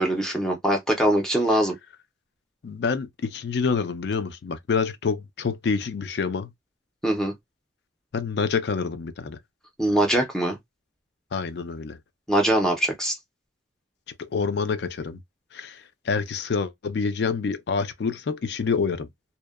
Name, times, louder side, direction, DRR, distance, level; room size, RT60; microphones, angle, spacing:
voice 1, 0.0-1.7 7.0-7.3 9.8-10.6 12.3-13.1, right 1 dB, 5° left, 0.5 m, -22 dB
voice 2, 2.6-6.5 8.1-9.4 11.3-12.0 14.2-15.2 15.5-19.1, left 5 dB, 60° left, 0.4 m, -27 dB
2.7 x 2.0 x 2.3 m
head